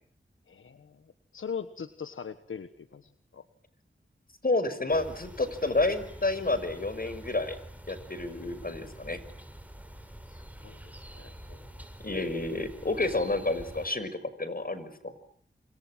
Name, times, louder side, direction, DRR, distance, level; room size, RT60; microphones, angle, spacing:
voice 1, 0.5-3.4 10.3-11.7, left 6 dB, 90° left, 11 dB, 1.4 m, -42 dB
voice 2, 4.4-7.6 7.9-9.2 12.0-15.1, left 2 dB, 45° left, 13 dB, 6.1 m, -30 dB
sound 1, 4.9-13.9, right 1 dB, 5° right, 7.1 m, -46 dB
29.5 x 27.0 x 7.6 m, 0.63 s
cardioid pair, 40°, 20 cm